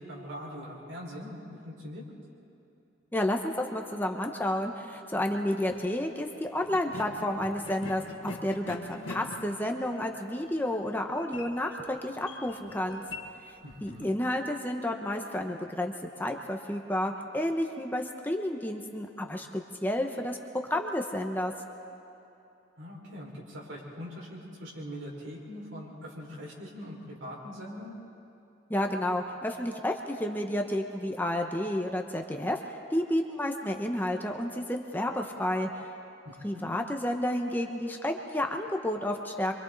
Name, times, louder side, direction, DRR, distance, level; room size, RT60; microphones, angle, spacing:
voice 1, 0.0-2.0 13.6-14.1 22.8-27.9 36.2-36.7, equal, 80° right, -3 dB, 5.0 m, -42 dB
voice 2, 3.1-13.0 13.8-15.9 16.2-20.4 20.7-21.5 28.7-32.6 32.9-35.7 36.4-39.5, left 1 dB, 10° left, 3 dB, 0.9 m, -31 dB
sound 1, 5.6-5.9 6.6-14.1, left 2 dB, 75° left, 1.7 m, -44 dB
27.5 x 24.5 x 4.0 m, 2.8 s
head